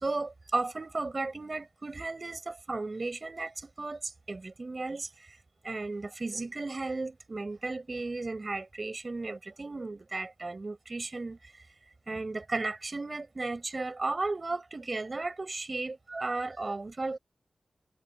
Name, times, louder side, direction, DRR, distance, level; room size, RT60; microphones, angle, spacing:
voice 1, 0.0-5.1 5.6-11.5 12.1-17.2, right 3 dB, 40° right, 4.1 m, -35 dB
wide cardioid pair, 90°, 0 cm